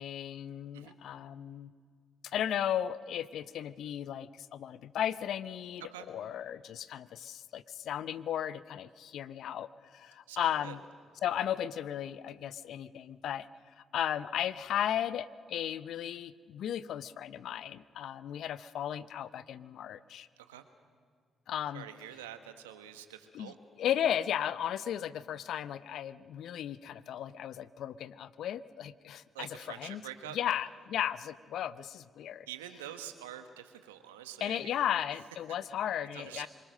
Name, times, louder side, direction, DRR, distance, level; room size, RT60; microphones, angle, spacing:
voice 1, 0.0-1.7 2.2-10.8 11.2-13.5 13.8-20.3 21.5-21.9 23.3-23.5 23.8-29.5 29.8-30.0 30.3-32.5 34.4-36.5, left 10 dB, 70° left, 16 dB, 0.6 m, -35 dB
voice 2, 10.3-10.8 20.4-20.6 21.7-23.5 29.3-30.4 32.5-34.8 36.1-36.5, right 11 dB, 90° right, 8 dB, 1.2 m, -46 dB
25.5 x 23.5 x 6.5 m, 2.1 s
hypercardioid pair, 40°, 0 cm